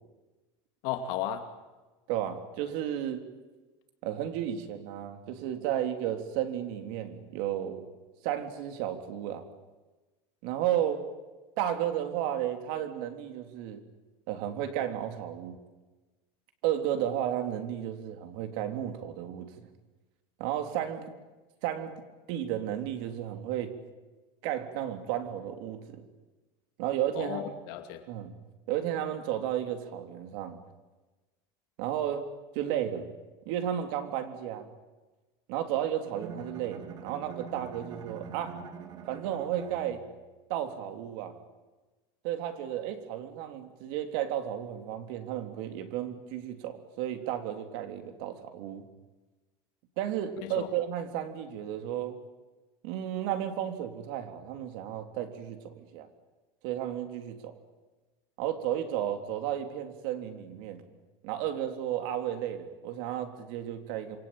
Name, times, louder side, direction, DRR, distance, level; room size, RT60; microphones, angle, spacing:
voice 1, 0.8-1.6 27.2-28.1 50.4-50.7, left 10 dB, 60° left, 2.6 m, -35 dB
voice 2, 2.1-3.2 4.0-7.8 8.2-9.4 10.4-11.1 11.6-13.8 14.3-15.6 16.6-19.7 20.4-21.1 21.6-22.0 22.3-23.7 24.4-26.0 26.8-27.4 28.1-28.3 28.7-30.6 31.8-32.3 32.5-33.1 33.5-34.7 35.5-38.6 39.1-40.1 40.5-41.4 42.2-48.9 50.0-52.2 52.8-56.1 56.6-57.6 58.4-60.8 61.2-64.2, right 11 dB, 60° right, 3.6 m, -33 dB
Bowed string instrument, 36.0-40.3, right 6 dB, 30° right, 2.3 m, -44 dB
27.5 x 24.0 x 9.1 m
cardioid pair, 175°, 13 cm